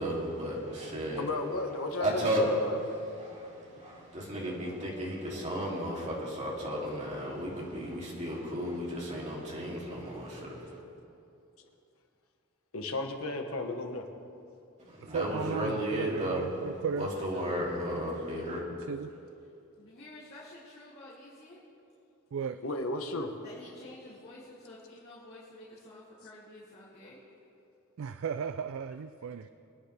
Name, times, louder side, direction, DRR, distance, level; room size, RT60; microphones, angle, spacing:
voice 1, 0.0-1.3 2.0-2.5 3.2-10.8 14.8-16.4 16.9-18.6, equal, 35° right, -5 dB, 2.8 m, -34 dB
voice 2, 1.2-2.8 12.7-14.0 22.6-23.3, left 2 dB, 80° left, 4 dB, 1.3 m, -34 dB
voice 3, 15.0-17.1 18.9-19.1 22.3-22.6 28.0-29.5, right 6 dB, 65° right, 11 dB, 0.4 m, -35 dB
voice 4, 17.1-18.5 19.8-21.6 23.4-27.2 29.3-29.4, left 1 dB, 50° left, -11 dB, 2.8 m, -51 dB
23.5 x 9.6 x 3.4 m, 2.6 s
head